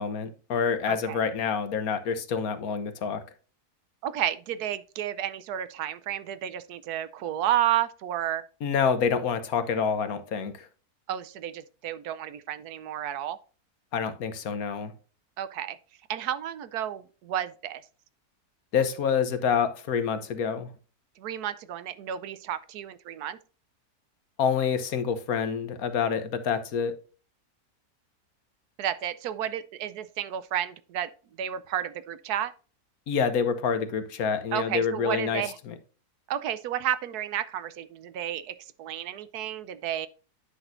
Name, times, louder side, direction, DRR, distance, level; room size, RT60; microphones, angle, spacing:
voice 1, 0.0-3.2 8.6-10.7 13.9-14.9 18.7-20.7 24.4-27.0 33.1-35.7, left 6 dB, 70° left, 1.4 m, -27 dB
voice 2, 0.9-1.2 4.0-8.4 11.1-13.4 15.4-15.8 16.1-17.8 21.2-23.4 28.8-31.1 31.4-32.5 34.5-35.6 36.3-40.1, right 11 dB, 85° right, 1.2 m, -31 dB
9.9 x 6.1 x 2.6 m
omnidirectional pair, 1.6 m